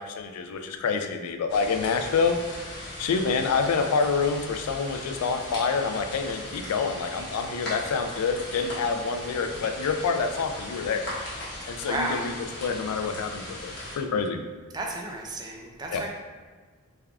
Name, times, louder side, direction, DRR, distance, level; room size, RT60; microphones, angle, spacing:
voice 1, 0.0-11.4 11.7-12.3 12.6-14.4 15.9-16.0, left 5 dB, 85° left, 6 dB, 0.4 m, -27 dB
sound 1, 1.5-14.0, left 1 dB, 50° left, 1.0 m, -38 dB
voice 2, 11.8-12.3 14.7-16.1, right 2 dB, 20° right, 0 dB, 0.3 m, -32 dB
3.4 x 3.4 x 2.3 m, 1.4 s
head